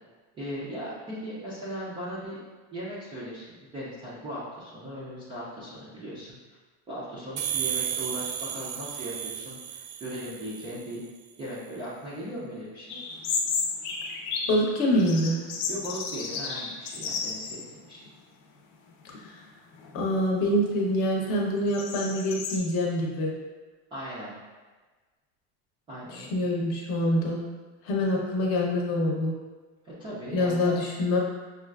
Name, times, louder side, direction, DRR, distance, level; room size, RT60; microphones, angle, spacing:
voice 1, 0.3-2.4 2.7-6.4 6.9-11.0 11.4-13.0 15.7-18.0 23.9-24.3 25.9-26.5 29.8-30.8, equal, 15° right, -9 dB, 0.3 m, -38 dB
sound 1, 7.4-10.9, right 9 dB, 80° right, 0.6 m, -33 dB
sound 2, 12.9-14.7 15.0-17.7 18.1-18.2 18.9-19.3 19.8-22.6, left 4 dB, 70° left, 0.7 m, -33 dB
voice 2, 14.5-15.4 19.9-23.3 26.1-27.4 27.8-29.3 30.3-31.2, left 1 dB, 40° left, -2 dB, 0.7 m, -25 dB
6.1 x 2.4 x 2.3 m, 1.3 s
cardioid pair, 165°, 37 cm